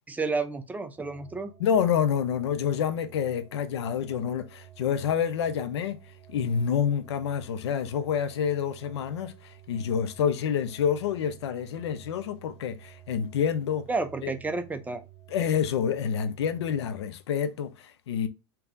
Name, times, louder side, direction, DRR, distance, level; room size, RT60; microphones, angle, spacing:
voice 1, 0.1-1.5 13.9-15.0, right 3 dB, 10° right, 0.5 m, -31 dB
sound 1, 0.9-17.0, right 12 dB, 35° right, 1.2 m, -52 dB
voice 2, 1.6-6.0 6.3-13.9 14.2-14.3 15.3-18.3, left 8 dB, 80° left, 0.6 m, -28 dB
3.6 x 2.9 x 2.5 m
hypercardioid pair, 115°, 14 cm